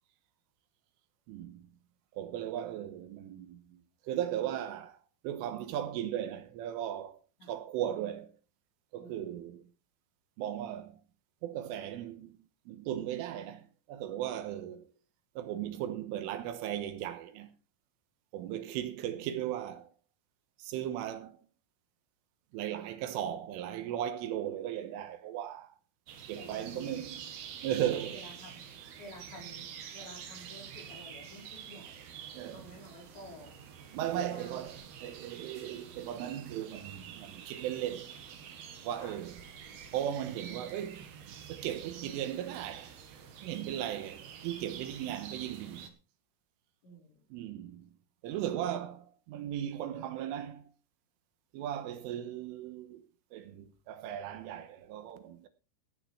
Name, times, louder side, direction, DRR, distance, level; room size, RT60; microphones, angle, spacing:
voice 1, 1.3-1.7 2.1-8.4 8.9-9.7 10.4-11.0 11.4-14.9 15.4-17.6 18.3-19.9 20.6-21.5 22.5-25.8 26.3-27.2 27.6-28.3 32.3-32.8 33.9-38.2 38.8-39.4 39.9-41.1 41.5-43.0 43.4-45.9 47.3-47.9 48.2-50.7 51.5-53.1 53.3-55.5, right 11 dB, 80° right, 3.6 m, -37 dB
voice 2, 9.0-9.5 26.4-27.1 28.1-28.6 29.0-29.7 29.9-32.0 32.5-33.5 34.1-34.6 39.0-39.2 45.0-45.1 46.8-47.2, equal, 60° left, 6.8 m, -50 dB
sound 1, 26.1-45.9, right 8 dB, 60° right, 3.0 m, -48 dB
17.0 x 8.8 x 4.7 m
omnidirectional pair, 5.8 m